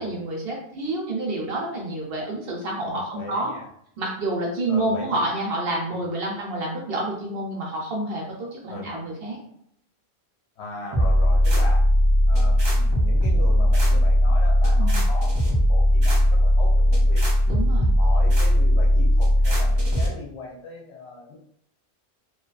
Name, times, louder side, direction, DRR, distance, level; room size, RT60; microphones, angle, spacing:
voice 1, 0.0-3.5 4.0-9.4 14.8-15.0 17.5-17.9, right 2 dB, 60° right, -2 dB, 0.7 m, -28 dB
voice 2, 2.9-3.7 4.7-5.2 5.9-6.0 8.7-8.9 10.6-11.9 12.3-15.4 15.6-17.3 17.9-21.4, left 3 dB, 65° left, -1 dB, 0.8 m, -38 dB
sound 1, 10.9-20.1, equal, 40° right, 0.4 m, -18 dB
2.6 x 2.2 x 2.3 m, 0.69 s
omnidirectional pair, 1.3 m